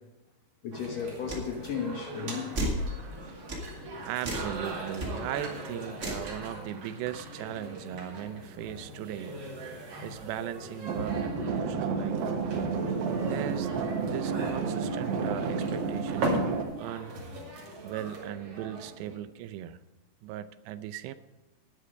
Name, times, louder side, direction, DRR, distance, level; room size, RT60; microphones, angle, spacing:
voice 1, 0.6-2.5 8.0-8.1 11.1-11.5, left 6 dB, 90° left, 1.4 m, -35 dB
sound 1, 0.7-19.2, right 1 dB, 40° right, 2.9 m, -40 dB
sound 2, 1.3-1.5 2.5-2.8 3.5-3.7 4.2-4.5 4.9-5.1 6.0-6.3, equal, 25° right, 1.8 m, -32 dB
voice 2, 4.0-9.4 10.0-12.2 13.2-13.7 14.1-17.2 17.8-19.8 20.2-21.1, right 11 dB, 85° right, 2.8 m, -38 dB
sound 3, 10.9-16.6, right 5 dB, 70° right, 2.8 m, -30 dB
11.5 x 10.0 x 5.2 m
omnidirectional pair, 4.8 m